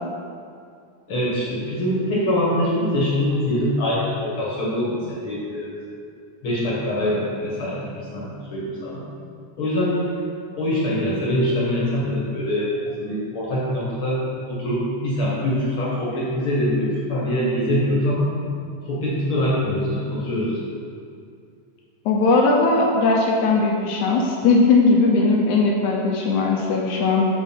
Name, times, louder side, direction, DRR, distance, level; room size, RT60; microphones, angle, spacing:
voice 1, 1.1-5.7 6.4-9.0 9.6-10.0 10.6-14.2 14.5-18.4 18.9-20.6, left 1 dB, 50° left, -6 dB, 2.0 m, -24 dB
voice 2, 22.1-27.3, left 3 dB, 75° left, -1 dB, 2.0 m, -18 dB
7.0 x 6.1 x 5.9 m, 2.3 s
omnidirectional pair, 3.9 m